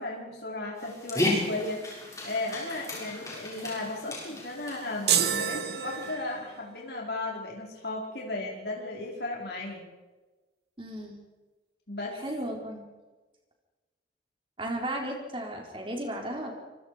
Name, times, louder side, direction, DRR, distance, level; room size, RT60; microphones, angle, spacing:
voice 1, 0.0-1.8 2.2-9.8 11.9-12.2, left 2 dB, 65° left, -1 dB, 5.4 m, -35 dB
Dog, 0.8-6.1, left 1 dB, 20° left, 6.8 m, -34 dB
sound 1, 5.1-6.6, right 8 dB, 65° right, 2.2 m, -28 dB
voice 2, 10.8-11.2 12.2-12.8 14.6-16.5, right 1 dB, 30° right, 1 dB, 4.5 m, -34 dB
26.5 x 24.0 x 5.2 m, 1.2 s
head